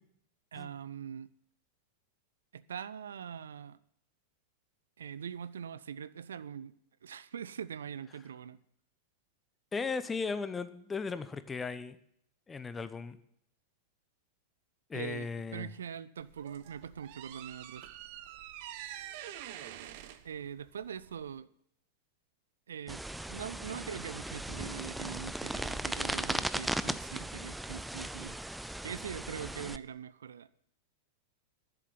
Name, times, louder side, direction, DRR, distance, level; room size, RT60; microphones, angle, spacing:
voice 1, 0.5-1.3 2.5-3.8 5.0-6.7 7.0-8.6 14.9-17.8 20.2-21.5 22.7-28.4 28.8-30.5, right 8 dB, 65° right, 17 dB, 0.4 m, -42 dB
voice 2, 9.7-12.0 12.5-13.2 14.9-15.7, left 4 dB, 15° left, 14 dB, 0.8 m, -36 dB
sound 1, 16.2-21.4, right 12 dB, 50° right, 0.9 m, -46 dB
sound 2, 22.9-29.8, right 1 dB, 5° right, 0.4 m, -37 dB
11.0 x 7.7 x 9.5 m, 0.70 s
figure-of-eight pair, 90°, 0 cm